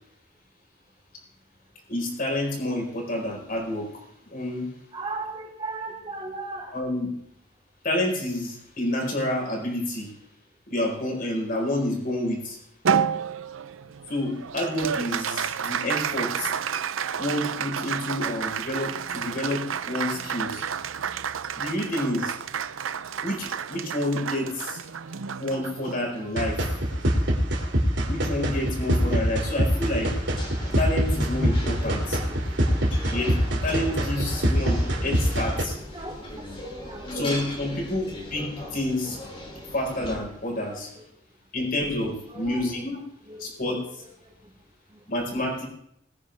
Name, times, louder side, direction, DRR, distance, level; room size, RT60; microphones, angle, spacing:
voice 1, 1.9-3.9 4.3-4.7 6.7-7.1 7.8-10.1 10.7-12.6 14.1-16.5 17.2-20.6 21.5-22.4 23.2-24.8 25.4-26.6 28.1-30.1 30.8-32.2 32.6-32.8 33.1-35.8 37.0-39.2 39.7-40.9 41.5-43.0 43.4-43.8 45.1-45.7, left 1 dB, 45° left, 0 dB, 4.8 m, -29 dB
voice 2, 4.9-6.7 32.2-32.4 33.9-34.0 35.9-36.2 36.6-37.1 41.0-41.1 42.3-42.6 43.3-43.5, right 3 dB, 25° right, -3 dB, 4.5 m, -36 dB
Applause, 12.8-27.5, right 7 dB, 90° right, 0.6 m, -31 dB
sound 1, 26.4-35.6, equal, 60° right, 2.7 m, -24 dB
marseille frioul ile restaurant, 29.7-40.2, left 1 dB, 25° left, 3.1 m, -38 dB
21.0 x 10.0 x 3.5 m, 0.74 s
head